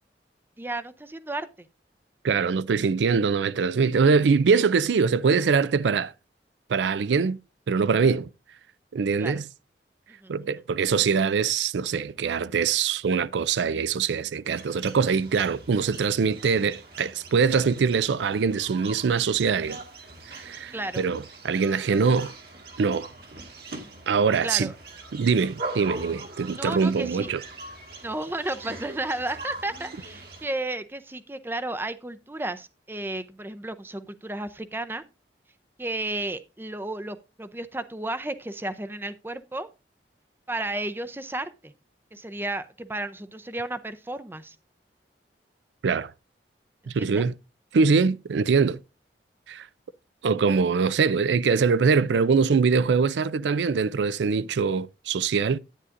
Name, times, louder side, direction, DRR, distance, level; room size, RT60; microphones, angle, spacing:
voice 1, 0.6-1.5 9.2-9.4 10.2-10.3 20.7-21.0 24.4-24.7 26.5-27.3 28.0-35.0 35.8-39.7 40.5-41.7 42.1-44.6 46.8-47.2, right 2 dB, 10° right, 0.5 m, -33 dB
voice 2, 2.2-6.1 6.7-7.4 7.7-8.3 8.9-9.5 10.3-19.8 20.3-22.3 22.8-23.1 24.1-24.7 25.1-27.4 45.8-46.1 46.9-47.3 47.7-48.8 49.5-49.7 50.2-55.6, right 5 dB, 85° right, 0.4 m, -23 dB
sound 1, 14.5-30.5, right 2 dB, 60° right, 1.8 m, -41 dB
10.0 x 9.6 x 2.5 m
head